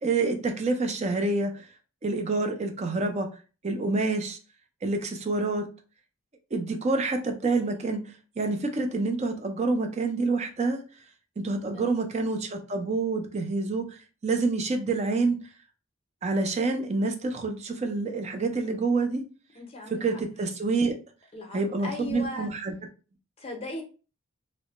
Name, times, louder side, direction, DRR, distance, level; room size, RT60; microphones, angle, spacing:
voice 1, 0.0-1.7 2.0-3.3 3.6-4.4 4.8-5.7 6.5-8.1 8.4-10.8 11.4-15.4 16.2-19.2 19.9-21.0 21.5-22.7, right 3 dB, 30° right, 5 dB, 0.4 m, -27 dB
voice 2, 19.5-20.2 21.3-22.5 23.4-23.8, left 1 dB, 30° left, 2 dB, 0.6 m, -38 dB
2.1 x 2.0 x 2.8 m, 0.35 s
head